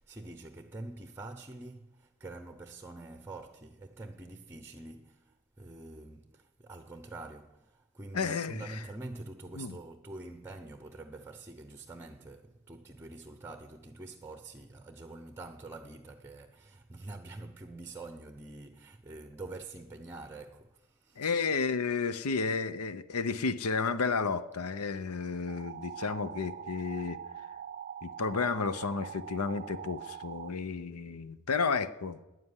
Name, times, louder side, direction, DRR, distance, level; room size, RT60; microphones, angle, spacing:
voice 1, 0.0-21.4, right 2 dB, 10° right, 0.8 m, -46 dB
voice 2, 8.1-8.6 9.6-9.7 21.2-27.2 28.0-32.2, left 4 dB, 80° left, 0.8 m, -32 dB
sound 1, 25.5-30.5, right 8 dB, 40° right, 0.5 m, -43 dB
13.0 x 9.6 x 9.7 m
head